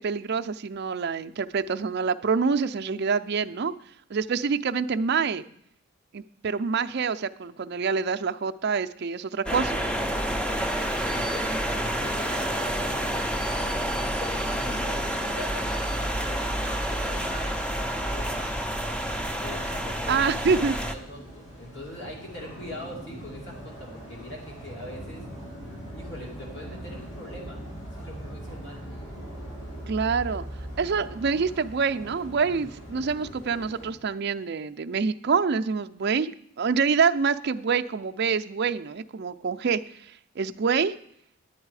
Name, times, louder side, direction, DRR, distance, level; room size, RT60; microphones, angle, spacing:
voice 1, 0.0-3.7 4.1-5.4 6.1-9.8 20.1-20.8 29.9-30.4 30.8-36.3 36.6-40.9, right 5 dB, 50° right, 8 dB, 0.4 m, -26 dB
sound 1, 9.5-20.9, equal, 5° left, 0.5 m, -29 dB
voice 2, 10.7-18.7 19.2-25.3 25.9-27.6 27.9-28.8, left 1 dB, 55° left, -1 dB, 2.7 m, -42 dB
sound 2, 18.8-33.9, right 1 dB, 75° left, 5.4 m, -41 dB
11.0 x 8.9 x 4.8 m, 0.70 s
head